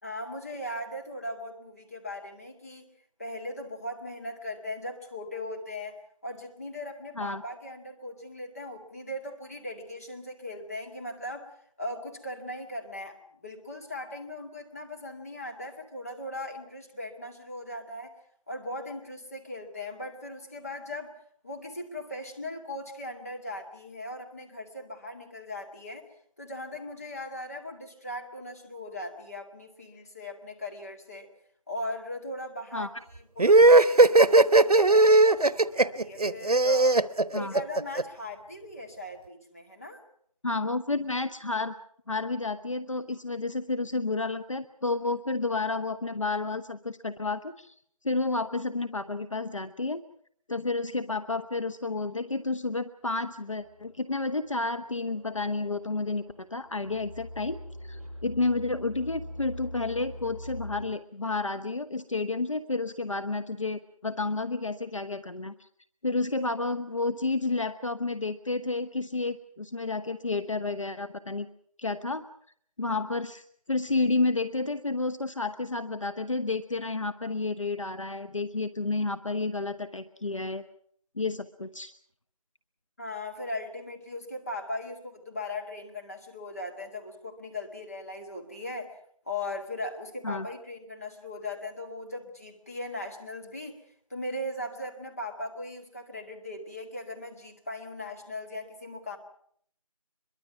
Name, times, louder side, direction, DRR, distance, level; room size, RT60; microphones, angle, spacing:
voice 1, 0.0-2.9 3.2-18.1 18.5-21.2 21.4-26.1 26.4-31.3 31.7-32.9 33.4-37.0 37.3-40.0 83.0-89.0 89.3-93.8 94.1-99.2, left 1 dB, 25° left, 2 dB, 2.1 m, -39 dB
sound 1, 33.4-38.0, right 2 dB, 85° right, 1.0 m, -18 dB
voice 2, 40.4-41.7 42.1-47.7 48.0-50.0 50.5-65.7 66.0-71.5 71.8-72.2 72.8-80.6 81.2-81.9 90.2-90.5, left 3 dB, 55° left, 11 dB, 1.0 m, -31 dB
sound 2, 53.5-60.8, equal, 10° right, 7.6 m, -44 dB
24.0 x 22.5 x 5.9 m, 0.64 s
figure-of-eight pair, 175°, 19 cm